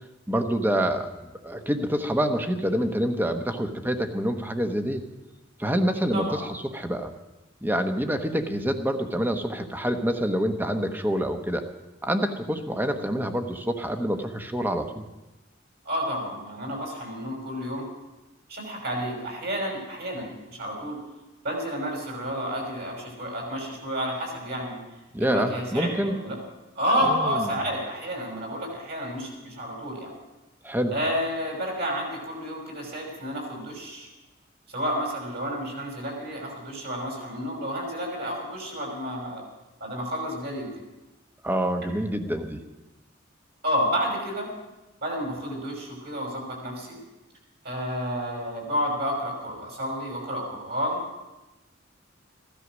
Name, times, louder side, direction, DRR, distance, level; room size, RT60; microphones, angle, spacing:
voice 1, 0.3-5.0 5.6-7.1 7.6-11.7 12.0-15.0 25.1-26.1 27.0-27.5 30.6-30.9 41.4-42.6, equal, 10° right, 6 dB, 1.0 m, -27 dB
voice 2, 15.8-17.9 18.5-21.0 21.4-24.8 25.2-26.4 26.7-30.1 30.9-34.1 34.7-39.4 39.8-40.7 43.6-44.5 45.0-47.0 47.6-51.0, equal, 55° right, 1 dB, 5.9 m, -30 dB
15.5 x 12.5 x 6.2 m, 1.0 s
head